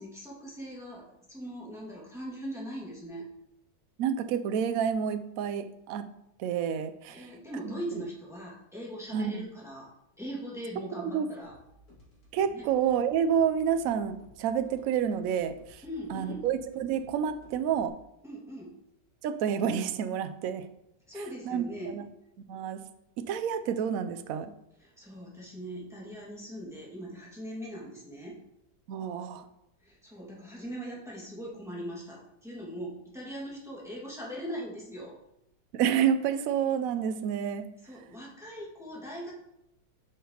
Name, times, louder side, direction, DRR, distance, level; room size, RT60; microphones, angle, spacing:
voice 1, 0.0-3.3 7.1-9.9 10.2-11.5 12.5-12.6 15.8-16.5 18.2-18.7 21.1-22.0 24.8-28.4 29.8-35.2 37.8-39.4, equal, ahead, -5 dB, 1.8 m, -40 dB
voice 2, 4.0-6.0 6.4-7.3 7.6-7.8 9.1-9.4 10.8-11.3 12.3-15.8 16.1-18.0 19.2-20.7 21.2-22.0 22.4-22.8 23.2-24.5 28.9-29.5 35.7-37.7, right 8 dB, 70° right, 10 dB, 0.8 m, -29 dB
sound 1, 11.4-17.9, left 1 dB, 60° left, 2.7 m, -57 dB
8.3 x 5.7 x 2.9 m, 0.81 s
omnidirectional pair, 1.9 m